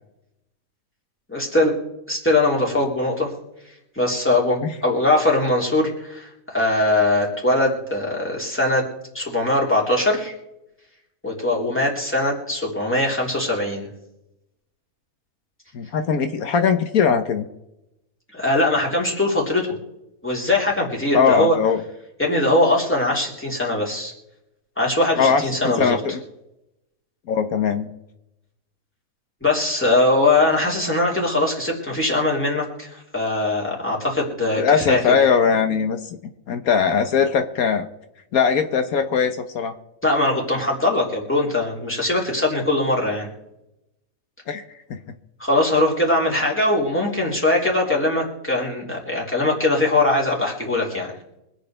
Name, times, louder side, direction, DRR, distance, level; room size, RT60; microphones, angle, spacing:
voice 1, 1.3-1.8 2.1-3.3 4.0-8.9 9.1-10.3 11.2-13.9 18.3-19.7 20.2-21.6 22.2-24.1 24.8-26.0 29.4-35.0 40.0-43.3 45.4-51.1, left 2 dB, 10° left, -3 dB, 3.7 m, -21 dB
voice 2, 15.7-17.5 21.1-21.8 25.2-26.2 27.3-27.9 34.5-36.0 36.5-37.9 38.3-39.7 44.5-44.6 44.9-45.0, left 6 dB, 75° left, 8 dB, 1.4 m, -20 dB
25.0 x 9.1 x 3.4 m, 0.87 s
omnidirectional pair, 1.5 m